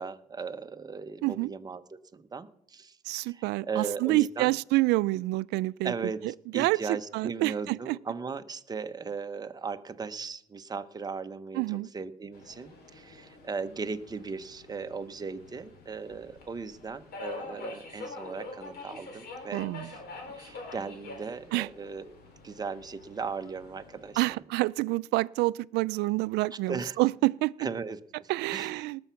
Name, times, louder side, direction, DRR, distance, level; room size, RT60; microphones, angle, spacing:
voice 1, 0.0-1.8 2.1-4.5 5.8-6.2 6.5-20.0 20.3-22.1 22.4-24.4 26.7-27.0 27.6-28.7, right 5 dB, 25° right, 0.9 m, -37 dB
voice 2, 3.0-5.9 6.5-8.0 11.5-11.9 19.5-19.9 21.5-21.7 24.2-27.5 28.3-29.0, right 20 dB, 90° right, 0.4 m, -28 dB
Subway metro underground, 12.3-24.4, left 3 dB, 70° left, 3.7 m, -46 dB
19.0 x 7.0 x 5.8 m
cardioid pair, 110°, 17 cm